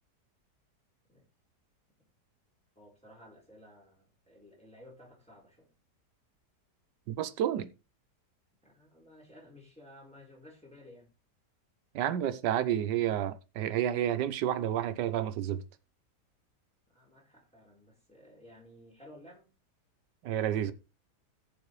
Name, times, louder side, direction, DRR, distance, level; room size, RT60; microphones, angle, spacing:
voice 1, 2.8-5.7 8.6-11.1 16.9-19.5, left 1 dB, 5° left, 4.2 m, -55 dB
voice 2, 7.1-7.7 11.9-15.6 20.2-20.7, right 11 dB, 85° right, 1.4 m, -30 dB
15.5 x 7.1 x 3.2 m
omnidirectional pair, 1.8 m